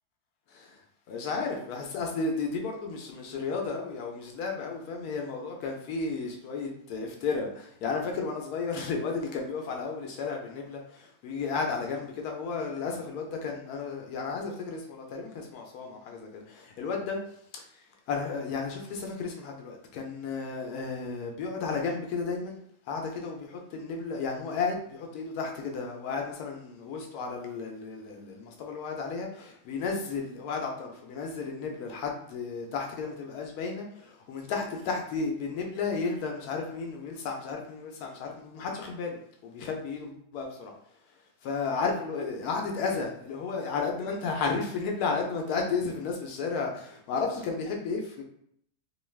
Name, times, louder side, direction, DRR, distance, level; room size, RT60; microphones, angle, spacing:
voice 1, 0.5-0.8 1.1-17.2 17.5-22.6 22.9-40.7 41.4-48.2, left 4 dB, 85° left, 1 dB, 1.1 m, -33 dB
2.9 x 2.3 x 3.2 m, 0.68 s
omnidirectional pair, 1.6 m